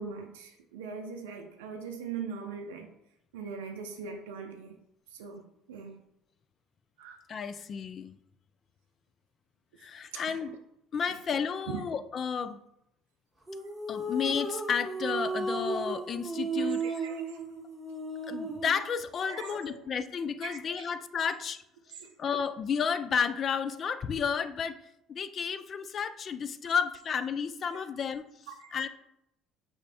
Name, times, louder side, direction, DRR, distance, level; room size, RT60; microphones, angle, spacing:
voice 1, 0.0-2.9 3.3-4.8 5.1-5.4 5.7-6.0 7.0-7.2 10.1-10.4 11.7-11.8 16.6-17.4 19.2-19.8 20.4-20.6 22.0-22.1 27.7-27.8 28.5-28.9, right 6 dB, 90° right, 3 dB, 0.4 m, -41 dB
voice 2, 7.3-8.2 9.8-10.6 10.9-12.6 13.9-16.9 18.3-21.6 22.2-24.8 25.1-28.3 28.7-28.9, left 6 dB, 45° left, 13 dB, 0.3 m, -32 dB
sound 1, 13.5-18.8, right 3 dB, 5° right, 1.2 m, -34 dB
5.5 x 2.5 x 3.3 m, 0.81 s
hypercardioid pair, 75°, 0 cm